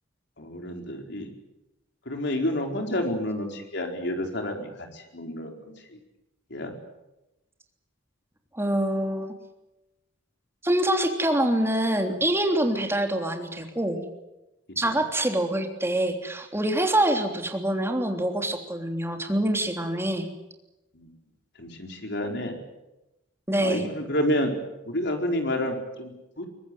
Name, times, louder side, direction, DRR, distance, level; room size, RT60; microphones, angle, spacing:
voice 1, 0.4-1.3 2.1-6.0 6.5-6.7 20.9-21.1 21.6-22.6 23.6-24.5 24.8-26.5, left 1 dB, 65° left, 3 dB, 4.5 m, -29 dB
voice 2, 8.5-9.3 10.6-14.0 14.8-20.3 23.5-23.9, right 1 dB, 15° right, 4 dB, 3.3 m, -25 dB
23.5 x 20.0 x 9.4 m, 0.98 s
head